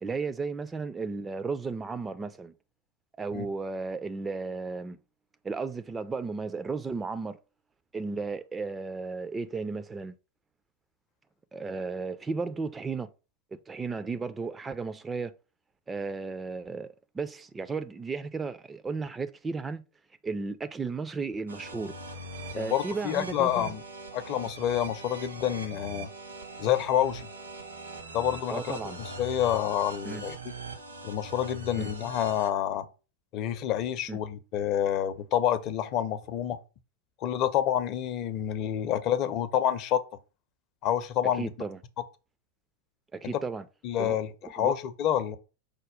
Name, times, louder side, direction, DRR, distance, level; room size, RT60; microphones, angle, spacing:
voice 1, 0.0-2.5 3.2-5.0 5.4-7.4 7.9-10.1 11.5-13.1 13.5-15.3 15.9-16.9 17.1-19.8 20.2-21.9 22.5-23.7 28.5-29.0 30.0-30.2 31.8-31.9 34.1-34.2 41.4-41.8 43.1-43.6 44.0-44.8, right 4 dB, 15° right, 0.3 m, -34 dB
sound 1, 21.5-32.5, right 2 dB, 80° right, 1.0 m, -41 dB
voice 2, 22.5-23.8 24.1-26.1 26.6-27.3 28.1-30.4 31.0-32.9 33.3-36.6 37.2-40.0 40.8-41.5 43.8-45.4, left 10 dB, 40° left, 0.5 m, -28 dB
5.0 x 2.2 x 4.8 m
figure-of-eight pair, 90°, 0 cm